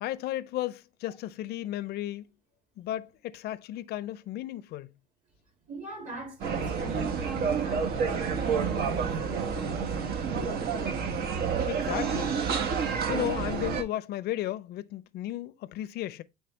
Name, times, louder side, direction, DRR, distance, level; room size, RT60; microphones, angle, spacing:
voice 1, 0.0-2.3 2.8-4.9 11.7-12.4 13.1-16.2, left 14 dB, 70° left, 0.5 m, -34 dB
voice 2, 5.6-10.8, right 2 dB, 50° right, 3.1 m, -42 dB
sound 1, 6.4-13.8, right 6 dB, 70° right, 1.1 m, -29 dB
8.8 x 3.3 x 3.2 m
cardioid pair, 110°, 17 cm